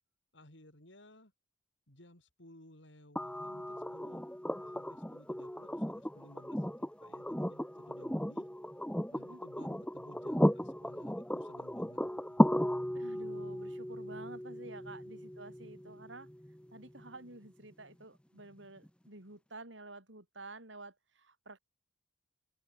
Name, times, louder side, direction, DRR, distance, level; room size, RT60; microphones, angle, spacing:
voice 1, 0.3-1.3 1.9-4.2 4.6-7.6 7.9-8.5 9.1-12.8 14.8-14.9, left 1 dB, 70° left, 6.1 m, -58 dB
sound 1, 3.2-17.1 18.8-18.9, equal, 5° left, 1.2 m, -35 dB
voice 2, 12.9-16.3 16.7-21.6, right 2 dB, 75° right, 7.7 m, -50 dB
open air
head